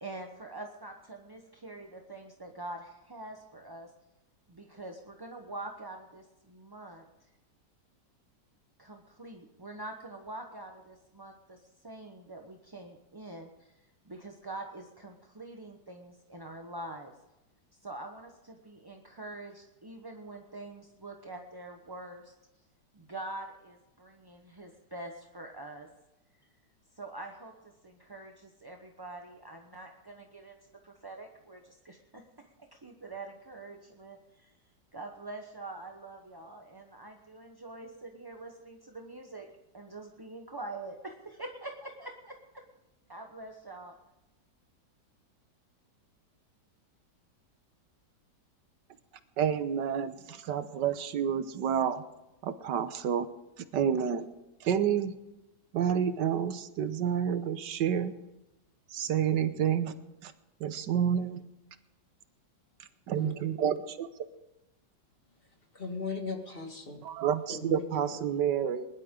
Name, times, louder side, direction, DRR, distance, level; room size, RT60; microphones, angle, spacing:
voice 1, 0.0-3.9 4.5-7.1 8.8-13.7 14.0-17.1 17.8-22.3 22.9-25.9 27.0-30.6 30.8-32.2 32.7-34.5 34.9-39.5 39.7-42.4 43.1-43.9, right 2 dB, 20° right, 2 dB, 0.8 m, -45 dB
voice 2, 49.4-52.0 52.4-53.3 53.7-54.3 54.6-55.1 55.7-58.1 58.9-59.9 60.2-60.3 60.6-61.4 63.1-64.1 67.0-68.9, right 8 dB, 80° right, 11 dB, 1.5 m, -29 dB
voice 3, 65.7-67.0 67.5-68.4, left 3 dB, 30° left, 3 dB, 2.0 m, -38 dB
21.0 x 11.5 x 3.8 m, 0.98 s
omnidirectional pair, 1.9 m